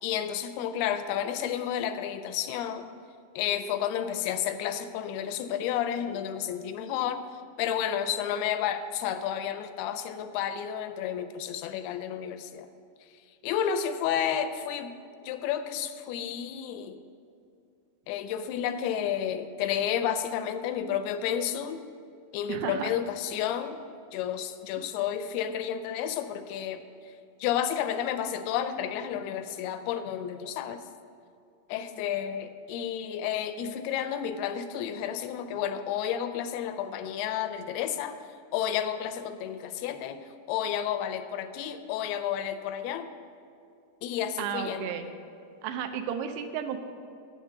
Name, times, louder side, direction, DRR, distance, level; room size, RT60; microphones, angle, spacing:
voice 1, 0.0-2.9 3.4-12.7 13.1-14.9 15.2-17.0 18.1-21.8 22.3-23.8 24.1-27.1 27.4-30.8 31.7-38.2 38.5-43.1 44.0-44.9, left 9 dB, 85° left, 10 dB, 2.3 m, -31 dB
voice 2, 22.5-22.9 44.4-45.1 45.6-46.8, right 8 dB, 85° right, 7 dB, 2.8 m, -33 dB
9.5 x 8.3 x 6.5 m, 2.4 s
omnidirectional pair, 4.8 m